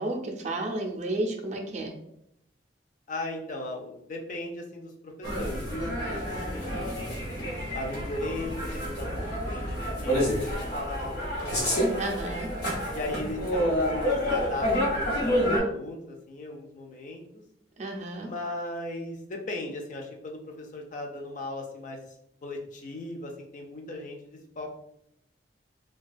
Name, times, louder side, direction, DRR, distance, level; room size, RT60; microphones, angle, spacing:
voice 1, 0.0-2.0 12.0-12.5 17.8-18.3, right 2 dB, 40° right, 2 dB, 0.4 m, -32 dB
voice 2, 3.1-5.7 6.1-7.1 7.7-11.9 12.9-17.4 18.2-22.0 22.4-24.8, left 2 dB, 45° left, 2 dB, 0.4 m, -37 dB
sound 1, 5.2-15.6, equal, 65° left, 0.9 m, -29 dB
2.3 x 2.2 x 2.5 m, 0.76 s
head